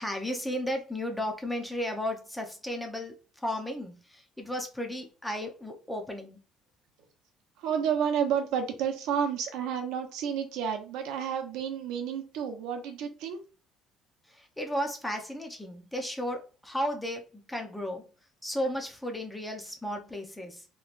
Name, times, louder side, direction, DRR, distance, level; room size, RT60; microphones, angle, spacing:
voice 1, 0.0-6.4 14.3-18.0 18.4-20.7, equal, 5° left, 3 dB, 0.5 m, -34 dB
voice 2, 7.6-13.4, right 7 dB, 75° right, 5 dB, 0.7 m, -30 dB
3.1 x 3.1 x 2.4 m, 0.35 s
cardioid pair, 165°, 0 cm